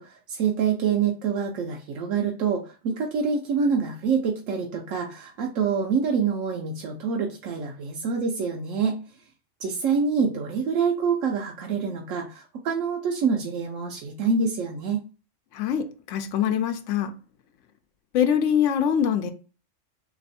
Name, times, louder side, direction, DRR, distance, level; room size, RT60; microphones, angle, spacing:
voice 1, 0.0-9.0 9.6-15.0, right 5 dB, 85° right, 1.0 m, -26 dB
voice 2, 15.5-17.1 18.1-19.3, left 8 dB, 75° left, 0.9 m, -23 dB
3.3 x 3.0 x 4.1 m
omnidirectional pair, 1.3 m